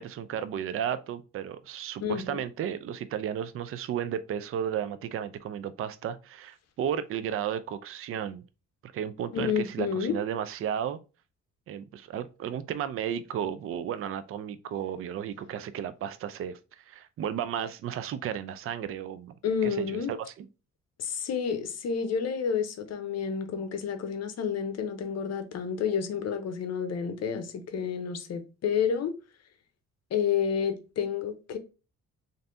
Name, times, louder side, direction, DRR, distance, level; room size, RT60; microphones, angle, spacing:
voice 1, 0.0-8.4 8.9-11.0 11.7-19.3 19.6-20.5, right 9 dB, 50° right, 0.4 m, -33 dB
voice 2, 2.0-2.4 9.3-10.2 19.4-20.1 21.0-29.1 30.1-31.6, left 7 dB, 60° left, 0.7 m, -30 dB
3.3 x 2.6 x 2.6 m
cardioid pair, 90°, 30 cm